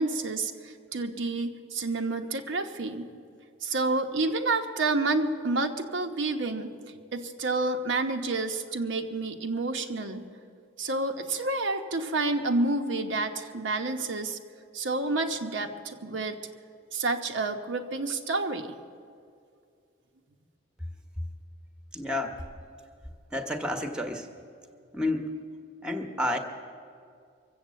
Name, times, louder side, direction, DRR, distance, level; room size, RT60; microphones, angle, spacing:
voice 1, 0.0-3.1 3.6-6.7 7.1-10.3 10.8-14.4 14.7-16.4 16.9-18.7, right 3 dB, 75° right, 5 dB, 1.0 m, -29 dB
voice 2, 21.9-22.4 23.3-24.3 24.9-25.3 25.8-26.4, left 1 dB, 5° right, 6 dB, 1.0 m, -30 dB
23.5 x 8.0 x 7.4 m, 2.3 s
head